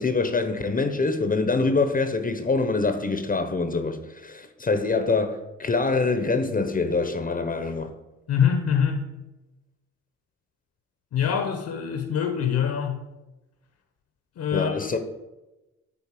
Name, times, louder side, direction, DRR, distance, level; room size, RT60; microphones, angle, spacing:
voice 1, 0.0-7.9 14.5-15.0, left 3 dB, 30° left, 0.9 m, -25 dB
voice 2, 8.3-9.1 11.1-13.0 14.4-14.9, left 8 dB, 70° left, 1.2 m, -24 dB
10.0 x 4.0 x 5.9 m
cardioid pair, 90°, 30 cm